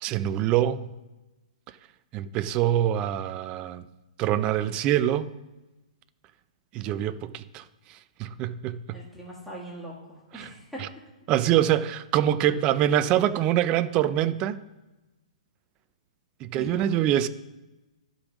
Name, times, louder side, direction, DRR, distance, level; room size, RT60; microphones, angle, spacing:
voice 1, 0.0-0.9 1.7-1.8 2.1-3.8 4.2-5.3 6.7-9.0 10.3-10.5 10.8-10.9 11.3-14.6 16.4-17.3, right 11 dB, 25° right, 0.4 m, -25 dB
voice 2, 8.9-10.8 16.5-16.9, right 1 dB, ahead, 1.4 m, -41 dB
11.5 x 5.3 x 6.1 m
hypercardioid pair, 145°, 4 cm